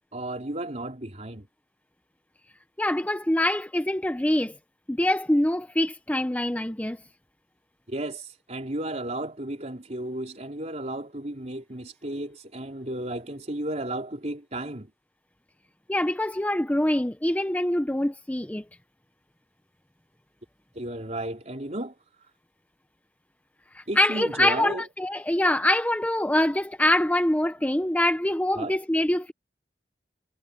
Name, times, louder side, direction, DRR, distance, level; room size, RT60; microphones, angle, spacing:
voice 1, 0.1-1.5 7.9-14.9 20.7-22.0 23.9-24.9 28.5-28.8, right 1 dB, 40° right, 3.7 m, -33 dB
voice 2, 2.8-4.5 4.9-7.0 15.9-18.6 23.7-29.3, left 1 dB, 10° left, 0.7 m, -24 dB
head